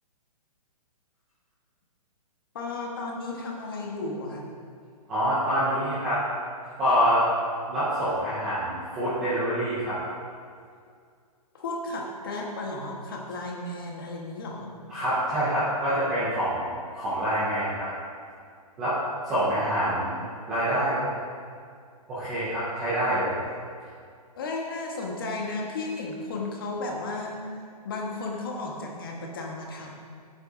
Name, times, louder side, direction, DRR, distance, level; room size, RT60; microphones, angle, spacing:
voice 1, 2.5-4.5 11.5-14.7 24.4-27.4 27.8-29.9, left 2 dB, 35° left, -1 dB, 1.3 m, -34 dB
voice 2, 5.1-6.3 6.8-7.2 7.7-10.0 14.9-16.7 17.0-17.9 18.8-19.0 19.2-20.2 20.5-21.0 22.1-23.4, equal, 5° right, -13 dB, 0.4 m, -26 dB
15.0 x 8.1 x 2.6 m, 2.2 s
hypercardioid pair, 180°, 20 cm